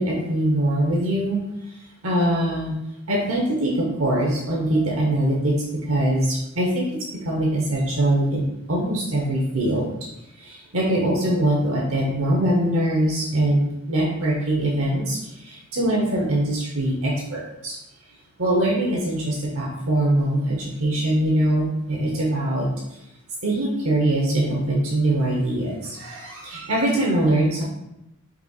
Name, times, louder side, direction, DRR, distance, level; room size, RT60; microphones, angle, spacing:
voice 1, 0.0-1.4 1.7-1.8 2.0-2.7 3.1-10.0 10.4-17.8 18.4-22.7 23.4-27.6, right 1 dB, 75° right, -3 dB, 0.9 m, -23 dB
5.5 x 4.0 x 2.4 m, 0.85 s
head